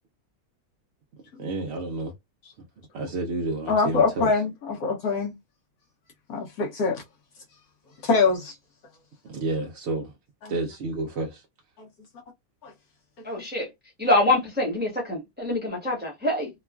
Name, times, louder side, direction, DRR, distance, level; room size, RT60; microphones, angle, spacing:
voice 1, 1.4-2.1 2.9-4.3 9.3-10.1 10.5-11.4, right 2 dB, 60° right, 0.7 m, -30 dB
voice 2, 3.7-5.3 6.3-7.0 8.0-8.5 10.4-10.5 12.6-12.7 13.4-13.5, left 4 dB, 75° left, 1.2 m, -24 dB
voice 3, 13.2-13.7 14.0-16.5, left 2 dB, 10° right, 0.7 m, -25 dB
3.0 x 2.3 x 2.3 m
omnidirectional pair, 1.6 m